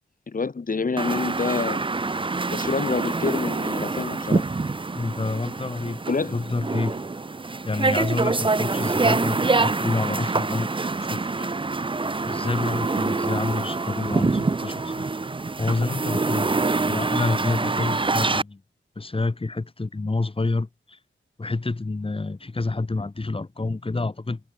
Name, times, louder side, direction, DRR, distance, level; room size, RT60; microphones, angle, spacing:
voice 1, 0.3-1.8 2.5-4.4 6.1-6.4, left 4 dB, 45° left, 4.3 m, -27 dB
sound 1, 1.0-18.4, right 3 dB, 25° right, 1.1 m, -25 dB
voice 2, 4.9-6.0 6.3-6.9 7.7-10.7 11.0-11.5 12.3-15.1 15.6-18.6 19.0-21.0 21.4-24.4, left 3 dB, 25° left, 3.4 m, -28 dB
wide cardioid pair, 105°, 20 cm